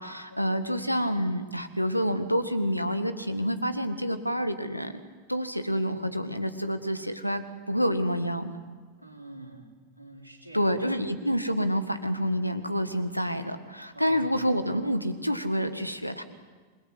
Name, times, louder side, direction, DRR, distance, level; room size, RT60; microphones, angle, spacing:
voice 1, 0.0-5.0 5.3-8.5 10.5-16.2, equal, 90° left, 9 dB, 1.7 m, -28 dB
voice 2, 9.0-9.6 10.0-10.6 13.9-14.3, right 1 dB, 85° right, 2 dB, 3.8 m, -45 dB
27.5 x 21.5 x 8.1 m, 1.4 s
figure-of-eight pair, 90°, 0 cm